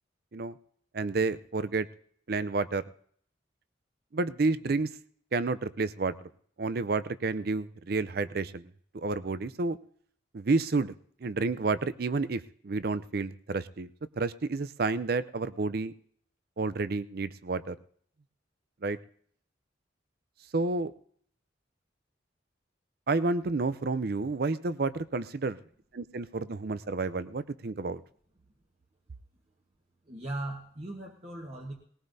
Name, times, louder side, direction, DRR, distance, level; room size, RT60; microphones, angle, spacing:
voice 1, 0.9-1.9 2.3-2.8 4.1-4.9 5.3-6.3 6.6-9.8 10.3-10.9 11.2-13.9 14.2-15.9 16.6-17.8 18.8-19.0 20.5-20.9 23.1-25.6 25.9-28.0, right 3 dB, 50° right, 14 dB, 0.5 m, -30 dB
voice 2, 30.1-31.7, right 1 dB, 35° right, 0 dB, 1.2 m, -38 dB
19.5 x 18.0 x 2.7 m, 0.62 s
head